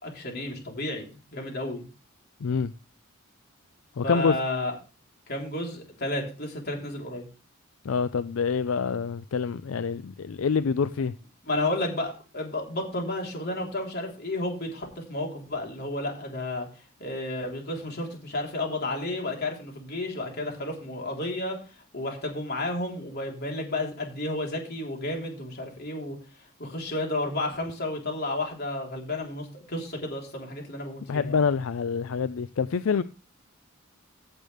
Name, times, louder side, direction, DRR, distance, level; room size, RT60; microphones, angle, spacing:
voice 1, 0.0-1.8 4.0-4.8 5.3-7.3 11.5-16.7 17.0-21.6 21.9-26.2 26.6-31.4, left 2 dB, 50° left, 3.8 m, -32 dB
voice 2, 4.0-4.4 7.8-11.1 31.1-33.0, left 5 dB, 75° left, 0.4 m, -26 dB
15.5 x 7.9 x 3.4 m
head